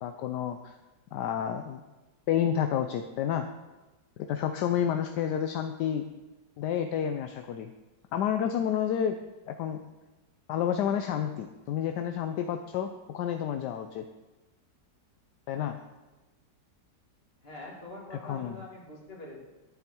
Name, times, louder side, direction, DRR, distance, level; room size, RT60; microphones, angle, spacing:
voice 1, 0.0-0.7 1.1-1.8 2.3-3.4 4.2-6.0 6.6-7.7 8.1-9.2 9.5-9.8 10.5-14.0 15.5-15.7 18.1-18.6, left 9 dB, 75° left, 7 dB, 1.2 m, -30 dB
voice 2, 17.4-19.4, left 2 dB, 35° left, -2 dB, 2.5 m, -44 dB
11.0 x 8.9 x 4.5 m, 1.1 s
omnidirectional pair, 1.9 m